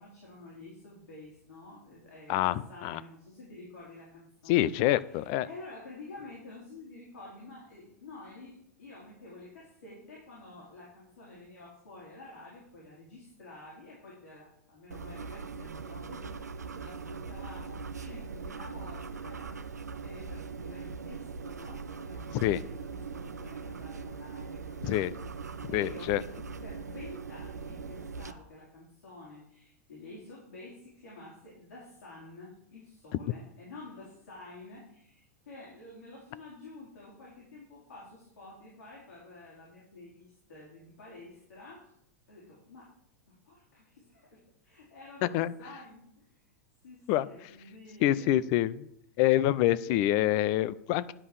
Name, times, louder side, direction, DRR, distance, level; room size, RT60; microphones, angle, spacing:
voice 1, 0.0-4.7 5.1-26.1 26.6-41.9 42.3-42.9 43.3-46.4 46.8-48.4, left 2 dB, 75° left, -5 dB, 3.8 m, -50 dB
voice 2, 2.3-3.0 4.5-5.5 22.4-22.6 24.8-25.1 25.7-26.2 45.2-45.5 47.1-47.3 48.0-48.9 49.2-51.1, left 14 dB, 45° left, 17 dB, 0.5 m, -26 dB
sound 1, 14.9-28.3, right 5 dB, 85° right, 0.6 m, -41 dB
9.8 x 5.5 x 6.7 m, 0.73 s
figure-of-eight pair, 95°, 9 cm